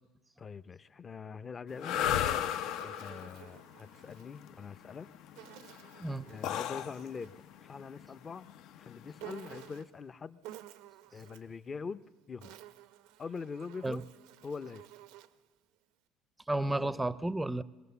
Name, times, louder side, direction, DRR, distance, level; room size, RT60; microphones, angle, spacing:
voice 1, 0.4-2.0 2.8-5.1 6.3-8.5 8.8-10.4 11.1-12.0 12.3-12.6 13.2-14.0 14.4-14.9 16.6-17.0, left 5 dB, 30° left, 15 dB, 0.6 m, -43 dB
sound 1, 1.7-9.8, left 10 dB, 70° left, 0.6 m, -36 dB
Insect, 2.1-4.3 5.4-7.4 9.2-10.0 10.4-11.6 12.2-15.5, right 14 dB, 85° right, 0.7 m, -52 dB
voice 2, 16.5-17.6, right 2 dB, 10° right, 17 dB, 0.5 m, -32 dB
22.0 x 18.0 x 6.9 m, 1.2 s
cardioid pair, 115°, 0 cm